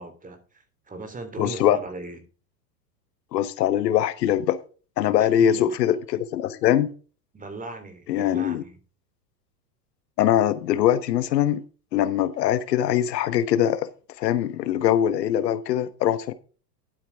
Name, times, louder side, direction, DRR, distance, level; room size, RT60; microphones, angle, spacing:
voice 1, 0.0-2.2 5.2-5.8 7.3-8.8, right 2 dB, 15° right, 3.2 m, -38 dB
voice 2, 1.4-1.8 3.3-4.6 5.0-6.9 8.1-8.6 10.2-11.6 11.9-13.9 14.2-16.3, left 11 dB, 80° left, 1.2 m, -22 dB
11.5 x 8.7 x 3.5 m
hypercardioid pair, 105°, 49 cm